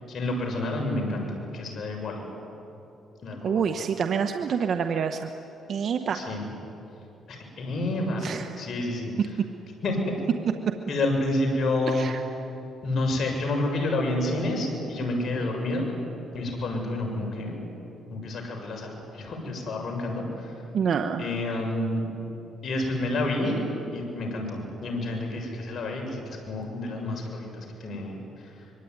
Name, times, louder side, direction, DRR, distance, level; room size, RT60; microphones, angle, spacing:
voice 1, 0.1-1.3 1.5-2.2 3.2-3.6 6.1-6.5 7.3-9.4 9.8-10.0 10.9-12.1 12.8-15.8 16.3-17.6 18.1-20.6 21.2-22.0 22.6-23.6 23.9-28.5, left 2 dB, 55° left, 1 dB, 7.0 m, -29 dB
voice 2, 3.4-5.3 5.7-6.2 8.2-8.5 11.9-12.2 20.7-21.2, right 7 dB, 60° right, 6 dB, 1.2 m, -27 dB
25.0 x 23.0 x 9.6 m, 2.9 s
cardioid pair, 90°, 0 cm